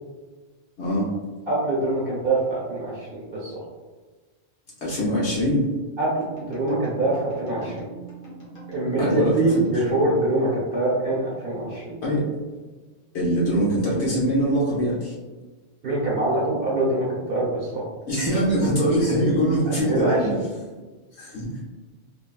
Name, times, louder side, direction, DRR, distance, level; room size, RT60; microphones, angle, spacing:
voice 1, 1.5-3.5 6.0-7.8 8.7-11.9 15.8-17.8 19.7-20.3, right 2 dB, 55° right, -6 dB, 1.1 m, -24 dB
voice 2, 4.8-5.7 9.0-9.5 9.9-10.0 12.0-12.2 13.1-15.1 18.1-20.4 21.2-21.5, equal, 70° left, -7 dB, 1.3 m, -22 dB
sound 1, 6.0-10.9, right 3 dB, 50° left, 1.1 m, -42 dB
3.5 x 2.2 x 2.2 m, 1.3 s
omnidirectional pair, 1.2 m